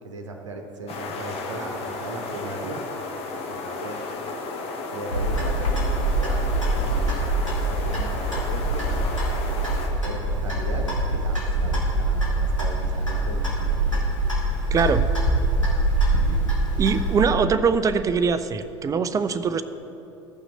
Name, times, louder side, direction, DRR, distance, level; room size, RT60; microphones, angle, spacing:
voice 1, 0.0-2.9 3.5-4.0 4.9-6.5 6.7-9.1 10.0-13.8, right 2 dB, 75° right, 4 dB, 0.9 m, -37 dB
The coast of Garður, 0.9-9.9, left 3 dB, 40° left, 1.2 m, -33 dB
Clock, 5.1-17.2, right 2 dB, 85° left, 2.1 m, -24 dB
voice 2, 14.7-15.1 16.8-19.6, right 5 dB, 20° right, 12 dB, 0.5 m, -22 dB
15.5 x 5.8 x 4.1 m, 2.9 s
figure-of-eight pair, 70°, 16 cm